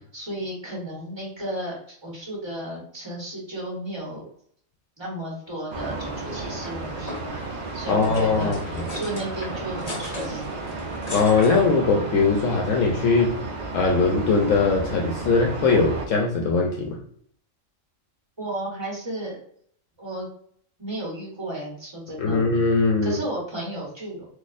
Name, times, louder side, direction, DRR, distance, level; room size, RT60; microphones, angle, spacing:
voice 1, 0.1-4.2 5.0-7.4 7.7-10.6 18.4-19.4 20.0-20.3 20.8-22.4 23.0-24.3, right 1 dB, 20° right, -4 dB, 1.3 m, -34 dB
sound 1, 5.7-16.1, right 3 dB, 50° right, 0.6 m, -33 dB
sound 2, 5.8-11.8, left 1 dB, 35° left, 0.9 m, -38 dB
voice 2, 7.9-8.9 11.1-13.4 13.7-17.0 22.2-23.2, left 4 dB, 75° left, 0 dB, 0.9 m, -21 dB
4.0 x 2.6 x 2.5 m, 0.63 s
omnidirectional pair, 1.4 m